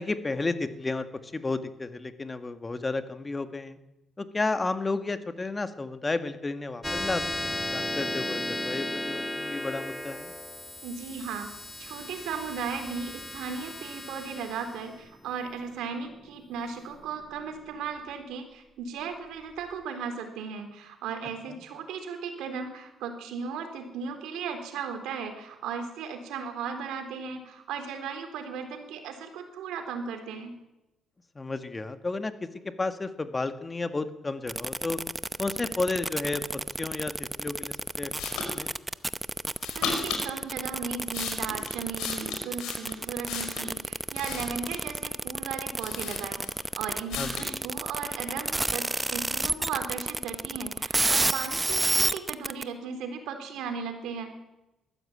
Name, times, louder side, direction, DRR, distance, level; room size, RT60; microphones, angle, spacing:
voice 1, 0.0-3.8 4.2-10.3 31.4-35.0 35.4-36.4 36.8-38.7 47.2-47.3, left 3 dB, 25° left, 9 dB, 1.8 m, -32 dB
sound 1, 6.8-17.7, left 1 dB, 10° left, 1.4 m, -35 dB
voice 2, 10.8-11.5 11.8-30.6 39.7-46.4 46.7-54.3, right 6 dB, 90° right, 6 dB, 3.9 m, -36 dB
sound 2, 34.5-52.6, right 2 dB, 15° right, 0.8 m, -29 dB
sound 3, 38.2-38.5 39.6-40.3 40.9-43.7 44.1-44.9 45.5-45.6 45.8-46.7 47.1-47.5, left 5 dB, 90° left, 5.2 m, -35 dB
21.0 x 14.5 x 8.8 m, 0.95 s
cardioid pair, 90°, 0 cm